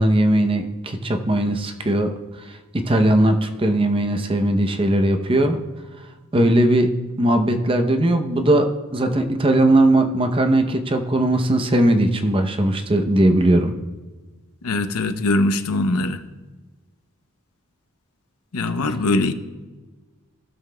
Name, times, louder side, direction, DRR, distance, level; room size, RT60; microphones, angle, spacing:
voice 1, 0.0-2.1 2.5-5.6 6.3-6.9 7.2-13.7, right 1 dB, 25° right, 6 dB, 0.6 m, -19 dB
voice 2, 14.6-16.2 18.5-19.3, left 2 dB, 90° left, 9 dB, 0.7 m, -21 dB
16.5 x 7.1 x 2.2 m, 1.3 s
head